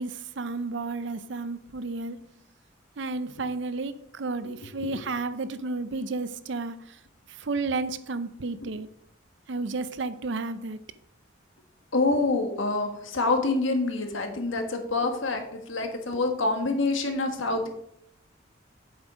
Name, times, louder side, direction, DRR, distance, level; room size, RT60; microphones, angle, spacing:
voice 1, 0.0-2.3 3.0-7.0 7.3-8.9 9.5-10.8, right 3 dB, 65° right, 0.6 m, -32 dB
voice 2, 11.9-17.7, left 3 dB, 75° left, 1.6 m, -26 dB
8.1 x 7.2 x 5.0 m
head